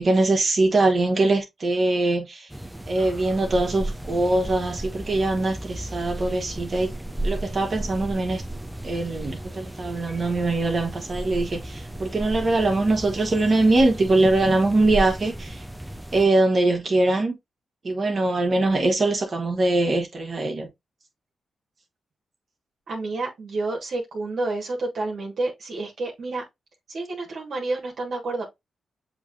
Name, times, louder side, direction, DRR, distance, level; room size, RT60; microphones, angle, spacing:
voice 1, 0.0-2.5 2.9-6.9 7.2-8.4 8.8-15.6 16.1-17.3 17.8-20.7, right 2 dB, 50° right, 1.3 m, -22 dB
sound 1, 2.5-16.3, right 1 dB, 10° right, 0.7 m, -34 dB
voice 2, 22.9-26.4 26.9-28.5, right 2 dB, 70° right, 1.3 m, -29 dB
6.9 x 3.1 x 2.5 m
supercardioid pair, 45°, 0 cm